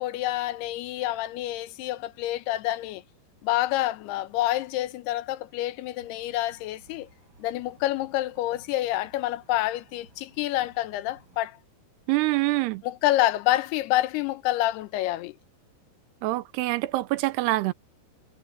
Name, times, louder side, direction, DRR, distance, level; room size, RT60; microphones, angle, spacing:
voice 1, 0.0-3.0 3.4-7.1 7.4-11.6 12.8-15.4, left 15 dB, 80° left, 2.8 m, -27 dB
sound 1, 6.0-11.4, right 2 dB, 25° right, 4.6 m, -58 dB
voice 2, 12.1-12.8 16.2-17.7, right 19 dB, 85° right, 2.8 m, -25 dB
omnidirectional pair, 4.7 m